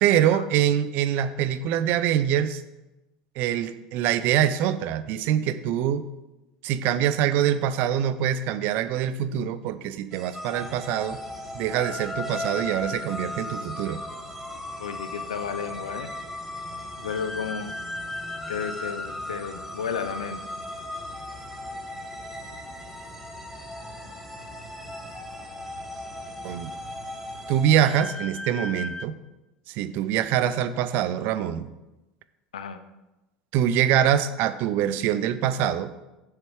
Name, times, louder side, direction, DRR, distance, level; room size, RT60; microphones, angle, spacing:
voice 1, 0.0-2.6 3.4-6.1 6.6-11.2 11.5-14.0 26.4-26.7 27.5-29.1 29.7-31.7 33.5-35.9, right 10 dB, 60° right, 13 dB, 0.6 m, -24 dB
sound 1, 10.1-28.0, equal, 5° right, 1.5 m, -42 dB
sound 2, 10.3-29.1, left 2 dB, 10° left, 0.5 m, -38 dB
sound 3, 10.5-27.6, equal, 45° left, 3.0 m, -47 dB
voice 2, 14.8-16.1 17.0-17.7 18.5-20.4 32.5-32.8, left 7 dB, 85° left, 10 dB, 0.6 m, -32 dB
7.2 x 6.6 x 4.7 m, 1.0 s
hypercardioid pair, 80°, 4 cm